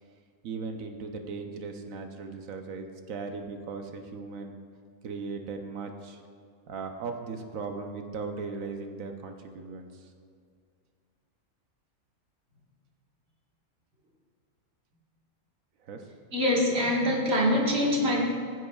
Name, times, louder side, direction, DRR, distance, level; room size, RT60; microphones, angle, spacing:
voice 1, 0.4-4.5 5.0-6.2 6.7-10.1 15.8-16.0, right 4 dB, 80° right, 4 dB, 1.2 m, -38 dB
voice 2, 16.3-18.3, left 1 dB, 50° right, -3 dB, 1.8 m, -24 dB
15.5 x 7.9 x 2.3 m, 2.3 s
omnidirectional pair, 1.4 m